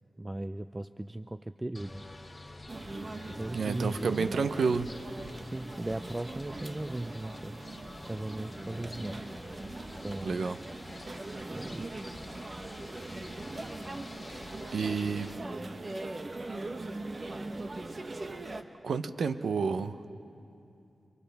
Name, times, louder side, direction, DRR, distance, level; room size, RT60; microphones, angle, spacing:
voice 1, 0.2-2.0 3.3-4.4 5.4-7.6 8.1-9.4 10.0-10.6 11.5-12.0 16.8-17.8, right 1 dB, 25° right, 11 dB, 0.4 m, -38 dB
sound 1, 1.7-15.4, left 2 dB, 35° left, 2.4 m, -48 dB
sound 2, 2.7-18.6, right 2 dB, 50° right, 1.1 m, -41 dB
voice 2, 3.5-4.9 10.2-10.6 14.7-15.3 18.8-20.0, right 5 dB, 85° right, 11 dB, 0.7 m, -29 dB
29.5 x 26.0 x 3.5 m, 2.7 s
cardioid pair, 40°, 0 cm